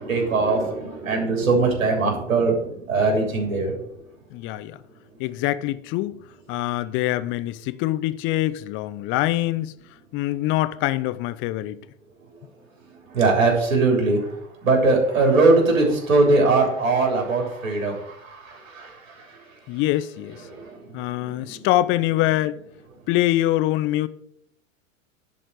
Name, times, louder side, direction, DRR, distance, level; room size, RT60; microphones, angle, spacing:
voice 1, 0.0-3.7 13.1-14.3 14.6-19.3 20.5-20.8 21.2-21.6, right 3 dB, 70° right, 3.2 m, -21 dB
voice 2, 4.3-4.8 5.2-6.2 6.5-9.7 10.1-11.8 19.7-20.4 20.9-22.6 23.1-24.1, left 15 dB, 30° left, 0.5 m, -24 dB
10.5 x 4.3 x 7.7 m
figure-of-eight pair, 95°, 40 cm